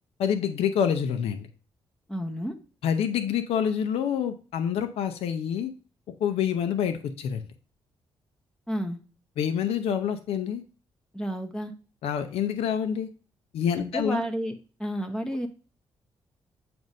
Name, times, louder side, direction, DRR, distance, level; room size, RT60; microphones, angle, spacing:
voice 1, 0.2-1.5 2.8-5.7 6.2-7.4 9.4-10.6 12.0-13.1 13.5-14.2, left 8 dB, 90° left, 8 dB, 0.6 m, -27 dB
voice 2, 2.1-2.5 8.7-9.0 11.1-11.7 13.8-14.5 14.8-15.5, equal, 5° left, 5 dB, 0.7 m, -31 dB
7.7 x 2.6 x 5.2 m, 0.37 s
cardioid pair, 105°, 10 cm